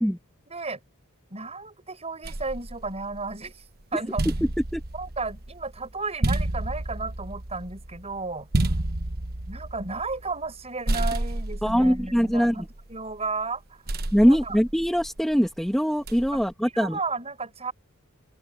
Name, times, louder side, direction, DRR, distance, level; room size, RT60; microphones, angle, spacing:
voice 1, 0.5-0.8 1.3-3.6 3.9-4.2 4.9-8.8 9.5-13.8 14.2-14.6 16.3-16.4 16.7-17.7, right 3 dB, 30° right, 6.7 m, -33 dB
sound 1, 2.2-3.5 3.9-10.6 10.9-13.1 13.9-15.3 16.1-16.5, right 1 dB, 45° right, 1.2 m, -30 dB
voice 2, 11.6-12.7 14.1-17.0, equal, ahead, 2.2 m, -22 dB
open air
head